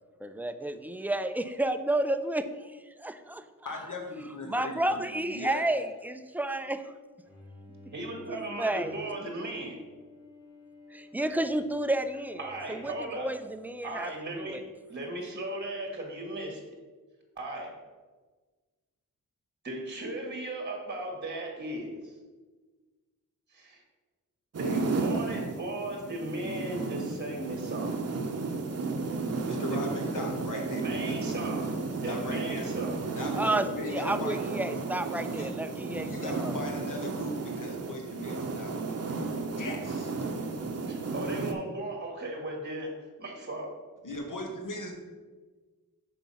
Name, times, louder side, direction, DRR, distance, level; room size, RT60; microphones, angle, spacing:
voice 1, 0.2-3.4 4.5-6.9 8.3-9.0 10.9-14.6 33.4-36.5, right 1 dB, 5° right, 9 dB, 0.3 m, -31 dB
voice 2, 3.6-5.0 5.2-5.6 29.5-31.2 32.1-32.7 33.1-34.4 34.8-34.9 35.3-35.5 35.9-39.1 39.5-40.1 44.0-44.9, left 2 dB, 70° left, 2 dB, 1.4 m, -38 dB
Bowed string instrument, 7.2-14.5, equal, 15° left, 1.3 m, -54 dB
voice 3, 7.9-9.8 12.4-13.3 13.8-14.6 14.9-16.6 17.4-17.7 19.6-22.2 23.5-23.8 24.6-28.0 29.7-29.9 30.5-31.7 32.0-33.0 40.9-42.9 43.2-43.7, right 1 dB, 30° right, 1 dB, 1.4 m, -36 dB
sound 1, 24.5-41.5, right 3 dB, 50° right, 0.7 m, -33 dB
5.8 x 4.6 x 5.4 m, 1.3 s
wide cardioid pair, 115°, 33 cm